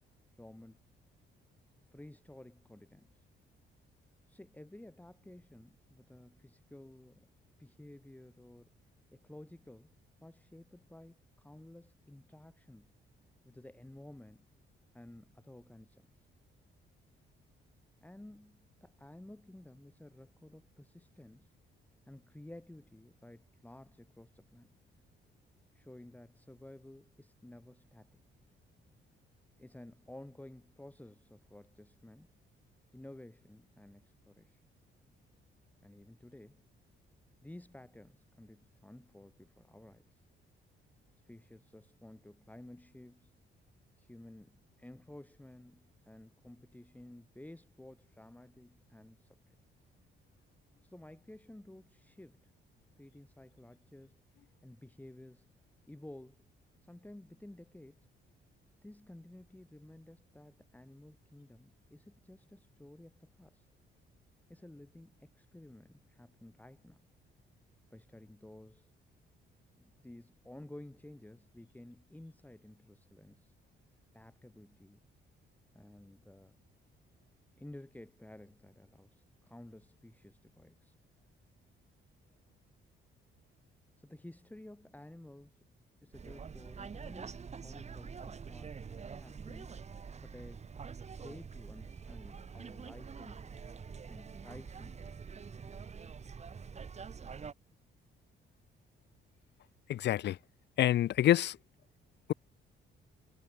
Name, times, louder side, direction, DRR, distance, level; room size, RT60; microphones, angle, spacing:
voice 1, 0.4-0.8 1.9-3.2 4.3-7.3 7.6-8.7 9.1-9.9 10.2-12.9 13.4-14.5 14.9-16.3 18.0-21.5 22.1-24.8 25.7-28.2 29.6-32.3 32.9-34.6 35.8-36.6 37.4-40.2 41.3-43.3 44.0-49.6 50.8-52.5 53.0-54.2 54.6-55.5 55.9-56.4 56.8-58.1 58.8-63.7 64.5-67.0 67.9-68.9 69.7-73.5 74.1-75.0 75.7-76.6 77.6-80.9 84.0-85.6 86.0-88.8 89.2-89.8 90.2-90.7 91.2-93.6 94.1-95.3, left 1 dB, 10° left, 5.3 m, -53 dB
sound 1, 86.1-97.5, right 6 dB, 35° right, 1.2 m, -46 dB
voice 2, 99.9-100.4 100.8-101.6, left 12 dB, 60° left, 0.5 m, -27 dB
cardioid pair, 90°, 20 cm